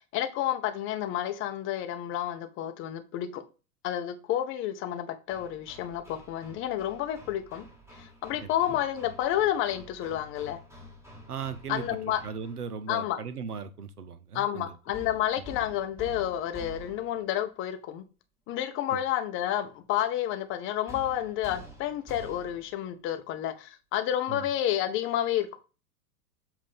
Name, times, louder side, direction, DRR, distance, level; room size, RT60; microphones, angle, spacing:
voice 1, 0.0-3.4 3.8-7.7 8.0-10.6 11.7-12.2 12.9-13.2 14.3-18.0 18.5-25.6, left 11 dB, 30° left, 0.7 m, -30 dB
Hammer, 5.3-12.7 14.9-17.3 20.9-22.8, equal, 5° right, 1.4 m, -48 dB
voice 2, 8.4-8.8 11.3-12.0 12.2-14.8 15.4-15.5 18.9-19.0 24.3-24.5, right 6 dB, 75° right, 0.8 m, -38 dB
7.4 x 2.7 x 5.1 m
figure-of-eight pair, 90°, 45 cm